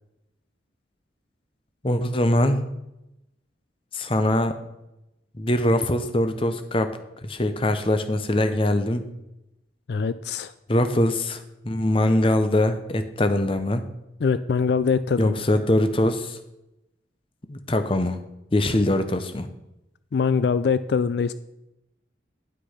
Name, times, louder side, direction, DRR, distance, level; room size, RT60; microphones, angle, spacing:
voice 1, 1.8-2.6 3.9-4.5 5.4-6.9 7.2-9.1 10.7-13.8 15.2-16.4 17.5-18.2 18.5-19.5, left 1 dB, 30° left, 9 dB, 0.7 m, -22 dB
voice 2, 9.9-10.5 14.2-15.4 20.1-21.3, left 5 dB, 60° left, 14 dB, 0.3 m, -23 dB
10.0 x 6.2 x 5.6 m, 0.90 s
head